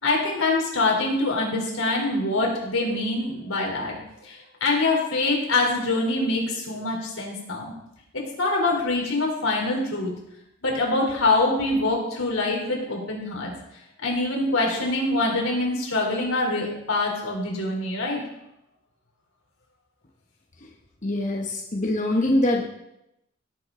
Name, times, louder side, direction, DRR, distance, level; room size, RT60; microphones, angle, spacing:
voice 1, 0.0-7.7 8.4-10.1 10.6-13.5 14.0-18.2, left 2 dB, 85° left, -1 dB, 3.6 m, -24 dB
voice 2, 21.0-22.6, left 1 dB, 35° left, 0 dB, 1.0 m, -24 dB
17.5 x 8.1 x 3.8 m, 0.86 s
head